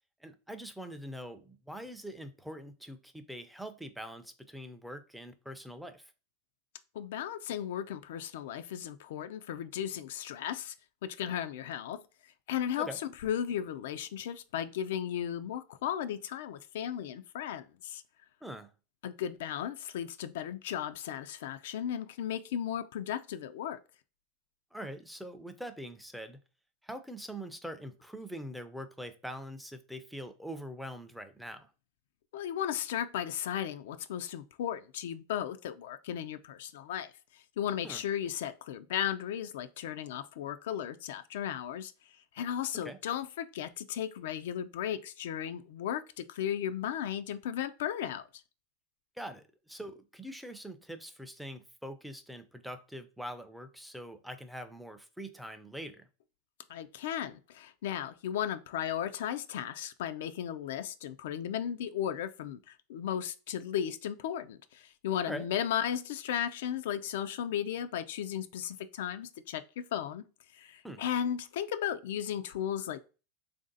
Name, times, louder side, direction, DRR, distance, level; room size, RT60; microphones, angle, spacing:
voice 1, 0.2-6.1 12.8-13.0 18.4-18.7 24.7-26.4 26.8-31.7 37.8-38.0 42.7-43.0 49.2-56.1 65.3-65.5 70.8-71.0, equal, ahead, 0.4 m, -43 dB
voice 2, 6.9-10.7 11.0-18.0 19.0-23.8 32.3-48.4 56.7-70.2 70.5-73.0, left 10 dB, 80° left, 0.4 m, -35 dB
3.2 x 2.6 x 3.9 m
supercardioid pair, 125°, 0 cm